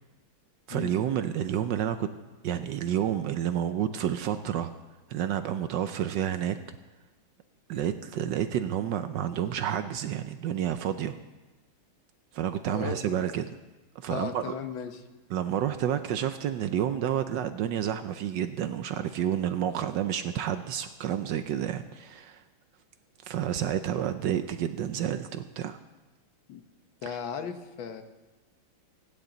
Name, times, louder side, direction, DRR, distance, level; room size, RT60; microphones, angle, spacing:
voice 1, 0.7-2.1 2.4-4.7 5.1-6.8 7.7-11.1 12.3-13.5 14.0-14.5 15.3-22.4 23.2-25.8, right 10 dB, 70° right, 10 dB, 1.2 m, -30 dB
voice 2, 12.7-13.3 14.1-15.0 26.5-26.6 27.0-28.0, left 7 dB, 70° left, 7 dB, 1.7 m, -36 dB
25.0 x 10.0 x 3.9 m, 1.2 s
omnidirectional pair, 2.3 m